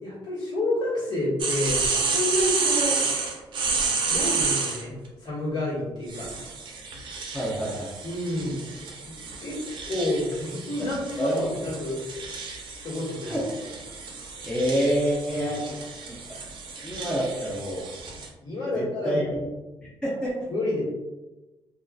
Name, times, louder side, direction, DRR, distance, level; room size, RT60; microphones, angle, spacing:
voice 1, 0.0-3.0 4.1-4.9 5.2-6.3 8.0-8.6 9.0-9.1 9.4-9.6 9.9-12.0 12.8-13.4 15.3-15.6 18.4-19.3 20.5-20.8, left 1 dB, 45° left, -8 dB, 1.5 m, -29 dB
sound 1, 1.4-4.8 6.1-18.3, right 4 dB, 55° right, 0.5 m, -30 dB
voice 2, 7.3-7.9 11.2-11.4 13.2-13.7 14.4-15.6 16.1-16.2 16.8-17.9 18.7-19.3 19.8-20.5, equal, 10° left, -6 dB, 0.5 m, -27 dB
2.6 x 2.3 x 2.2 m, 1.1 s
cardioid pair, 110°, 10 cm